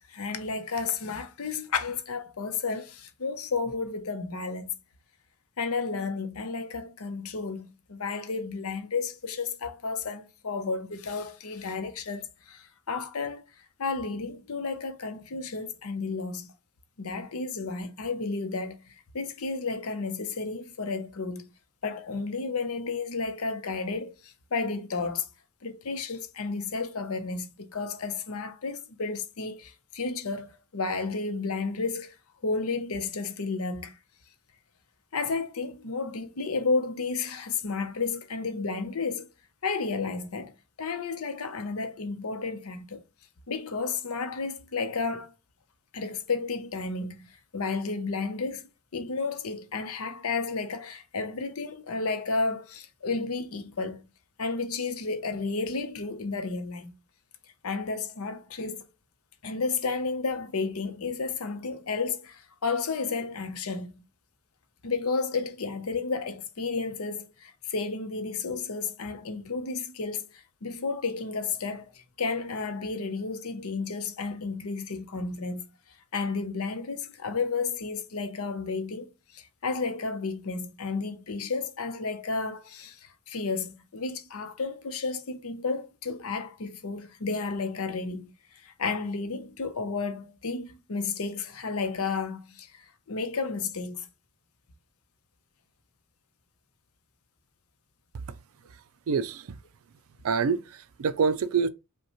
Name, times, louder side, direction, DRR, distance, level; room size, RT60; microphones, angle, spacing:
voice 1, 0.0-4.7 5.6-13.5 13.8-16.5 17.0-21.4 21.8-25.3 25.6-32.1 32.4-34.0 35.1-39.3 39.6-40.5 40.8-43.0 43.5-45.3 45.9-48.6 48.9-54.0 54.4-56.9 57.6-58.9 59.4-64.0 64.8-75.7 76.1-88.3 88.6-94.1, left 4 dB, 70° left, 0.7 m, -32 dB
voice 2, 99.1-99.6 100.2-101.7, right 5 dB, 65° right, 0.4 m, -27 dB
5.3 x 2.2 x 2.9 m
head